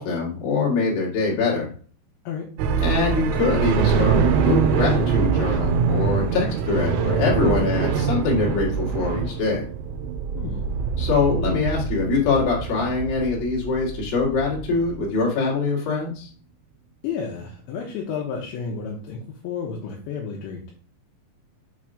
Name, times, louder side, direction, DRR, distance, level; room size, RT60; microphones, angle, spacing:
voice 1, 0.0-1.7 2.8-9.7 11.0-16.3, left 4 dB, 55° left, -3 dB, 3.5 m, -23 dB
sound 1, 2.6-15.0, right 6 dB, 85° right, 3.1 m, -24 dB
voice 2, 10.3-10.8 17.0-20.7, left 6 dB, 75° left, -2 dB, 3.2 m, -31 dB
7.5 x 3.5 x 5.0 m, 0.43 s
omnidirectional pair, 5.7 m